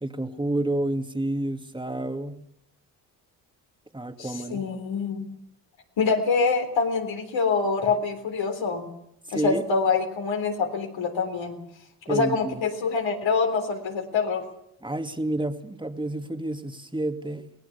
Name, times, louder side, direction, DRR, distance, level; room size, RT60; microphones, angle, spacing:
voice 1, 0.0-2.5 3.9-4.7 9.3-9.6 12.1-12.6 14.8-17.5, right 1 dB, 10° right, 7 dB, 2.3 m, -29 dB
voice 2, 4.2-5.3 6.0-8.9 9.3-11.6 12.1-14.4, left 4 dB, 65° left, 4 dB, 3.7 m, -25 dB
23.5 x 18.0 x 7.0 m, 0.77 s
supercardioid pair, 55°, 48 cm